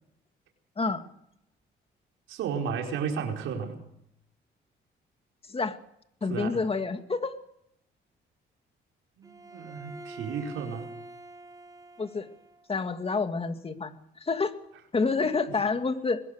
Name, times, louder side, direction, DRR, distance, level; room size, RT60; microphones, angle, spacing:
voice 1, 2.3-3.8 6.3-6.6 9.2-10.9 15.2-15.3, right 6 dB, 85° right, 2 dB, 4.6 m, -33 dB
voice 2, 6.2-7.4 12.0-12.3 12.7-13.9 14.2-14.6 14.9-16.2, left 4 dB, 30° left, 7 dB, 2.5 m, -28 dB
Bowed string instrument, 9.2-12.7, right 2 dB, 15° right, 1.4 m, -45 dB
22.0 x 21.0 x 6.7 m, 0.74 s
cardioid pair, 90°, 20 cm